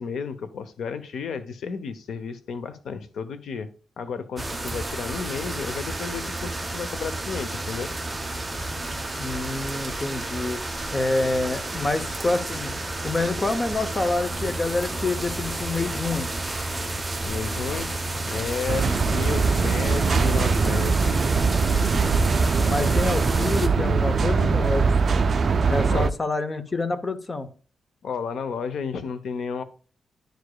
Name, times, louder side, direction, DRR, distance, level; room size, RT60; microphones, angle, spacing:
voice 1, 0.0-3.7 4.0-7.9 17.2-17.9 18.3-21.1 25.9-26.0 28.0-29.6, left 6 dB, 75° left, 0.7 m, -32 dB
sound 1, 4.4-23.7, right 2 dB, 15° right, 0.8 m, -31 dB
voice 2, 9.2-10.6 10.9-12.7 13.0-16.3 18.7-19.1 22.7-24.9 25.7-27.5, left 2 dB, 25° left, 0.7 m, -27 dB
sound 2, 18.7-26.1, right 4 dB, 45° right, 0.3 m, -22 dB
10.5 x 4.9 x 2.2 m
cardioid pair, 125°, 0 cm